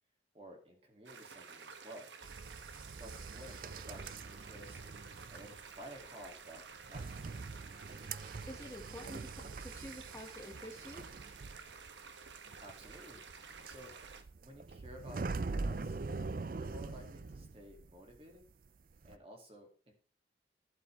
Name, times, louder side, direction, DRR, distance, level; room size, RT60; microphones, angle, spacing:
voice 1, 0.3-2.1 3.0-4.9 5.3-7.5 12.6-13.2 13.6-13.9 14.4-16.0 16.5-18.4 19.0-19.9, equal, 30° right, 2 dB, 2.2 m, -53 dB
sound 1, 1.1-14.2, right 5 dB, 90° right, 1.2 m, -52 dB
sound 2, 2.2-18.2 18.4-19.2, right 3 dB, 50° right, 0.5 m, -44 dB
voice 2, 8.5-11.0, equal, 15° left, 2 dB, 1.6 m, -48 dB
12.5 x 11.0 x 3.3 m, 0.40 s
head